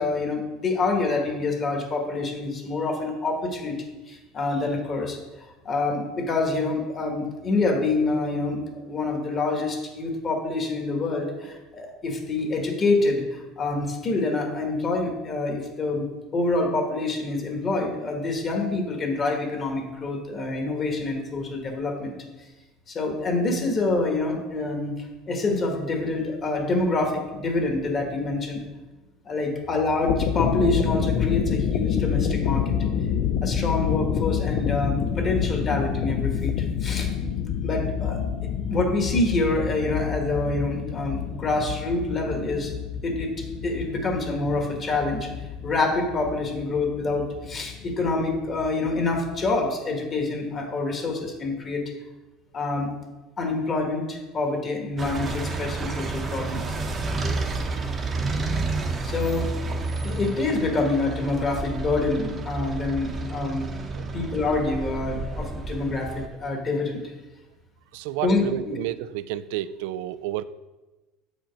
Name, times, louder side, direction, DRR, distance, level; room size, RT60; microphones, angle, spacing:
voice 1, 0.0-5.2 5.6-22.2 22.9-24.9 25.3-28.6 29.2-32.7 33.4-37.1 37.6-38.2 38.7-42.7 43.0-45.3 45.6-51.8 52.5-52.9 53.4-56.8 59.0-59.5 60.0-63.7 64.1-66.1 66.4-67.0 68.2-68.7, left 3 dB, 30° left, 2 dB, 1.4 m, -26 dB
sound 1, 29.9-49.6, left 8 dB, 55° left, 0.5 m, -28 dB
sound 2, 55.0-66.3, right 3 dB, 25° right, 0.8 m, -30 dB
voice 2, 67.9-70.5, right 13 dB, 80° right, 16 dB, 0.3 m, -31 dB
7.3 x 5.1 x 5.1 m, 1.1 s
cardioid pair, 145°, 0 cm